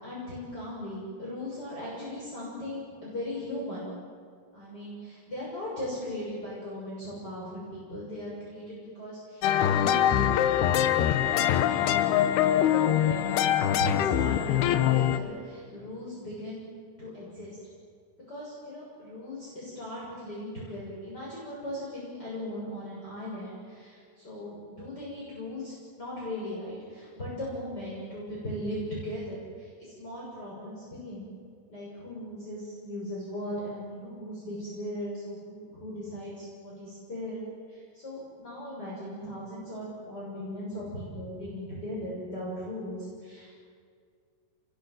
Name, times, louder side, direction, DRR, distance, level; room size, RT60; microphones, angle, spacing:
voice 1, 0.0-3.9 4.5-10.8 11.3-12.3 12.5-13.3 13.6-16.7 17.0-17.6 18.3-31.3 31.7-37.4 37.7-43.5, left 1 dB, 25° left, -6 dB, 7.2 m, -38 dB
sound 1, 9.4-15.2, left 11 dB, 80° left, 3.0 m, -23 dB
29.0 x 23.0 x 7.9 m, 2.1 s
omnidirectional pair, 4.6 m